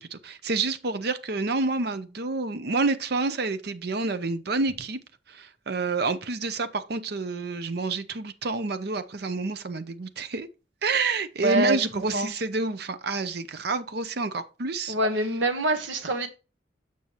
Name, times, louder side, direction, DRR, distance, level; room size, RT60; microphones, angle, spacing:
voice 1, 0.0-5.0 5.3-10.5 10.8-15.0, right 3 dB, 55° right, 0.7 m, -28 dB
voice 2, 11.4-11.9 12.1-12.3 14.9-16.3, right 2 dB, 80° right, 1.2 m, -25 dB
7.2 x 6.1 x 3.0 m
head